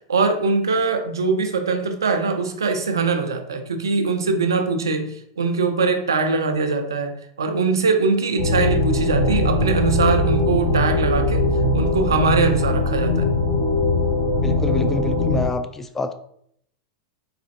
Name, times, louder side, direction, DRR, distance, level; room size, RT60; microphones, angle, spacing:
voice 1, 0.1-11.5 11.7-13.3, right 4 dB, 85° right, 6 dB, 0.4 m, -22 dB
sound 1, 8.4-15.5, left 2 dB, 50° left, 1.3 m, -20 dB
voice 2, 14.4-16.1, left 2 dB, 15° left, 9 dB, 0.3 m, -27 dB
4.0 x 2.5 x 2.6 m, 0.69 s
hypercardioid pair, 95°, 2 cm